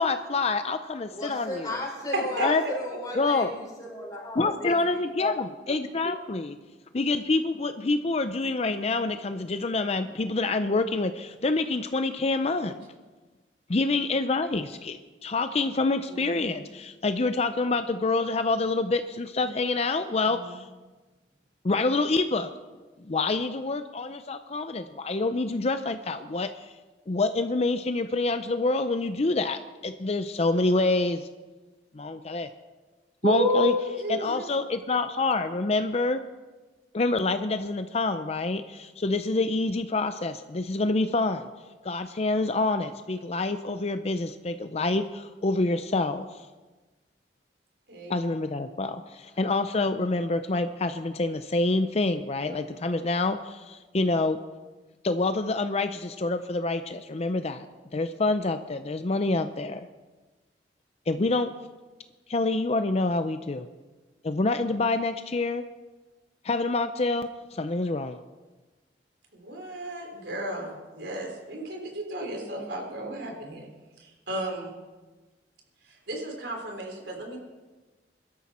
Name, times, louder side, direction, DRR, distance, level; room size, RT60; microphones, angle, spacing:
voice 1, 0.0-1.8 2.4-2.6 3.1-3.5 4.4-6.6 6.9-12.8 13.7-20.7 21.6-22.5 23.0-26.7 27.1-31.3 31.9-32.5 33.2-33.7 34.1-36.2 36.9-41.5 41.8-46.4 48.1-54.4 55.0-57.7 57.9-59.8 61.1-61.5 62.3-63.7 64.2-65.6 66.4-68.2, left 3 dB, 35° left, 9 dB, 0.5 m, -27 dB
voice 2, 1.1-5.0, left 1 dB, 20° left, -3 dB, 5.4 m, -35 dB
voice 3, 2.1-2.7 3.1-3.2 16.1-16.6 20.2-20.6 33.2-34.5 47.9-48.2 69.3-73.7 74.0-74.8 75.9-77.4, equal, 75° right, 1 dB, 3.9 m, -32 dB
23.0 x 12.5 x 4.3 m, 1.3 s
head